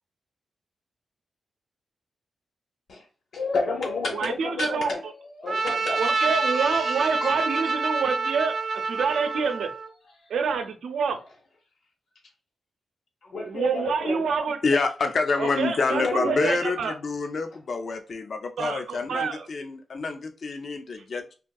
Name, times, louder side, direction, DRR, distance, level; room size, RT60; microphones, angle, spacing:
voice 1, 3.3-5.0 5.4-7.4 8.6-8.7 10.2-10.3 13.2-14.2 15.8-16.4, left 3 dB, 75° left, 0.8 m, -31 dB
voice 2, 4.1-5.1 5.9-9.7 10.3-11.2 13.5-14.6 15.4-16.9 18.6-19.5 21.0-21.1, right 5 dB, 90° right, 0.6 m, -27 dB
Trumpet, 5.5-9.9, right 4 dB, 40° right, 0.4 m, -27 dB
voice 3, 14.6-21.3, left 4 dB, 45° left, 0.4 m, -27 dB
3.5 x 2.6 x 2.3 m
wide cardioid pair, 175°, 0 cm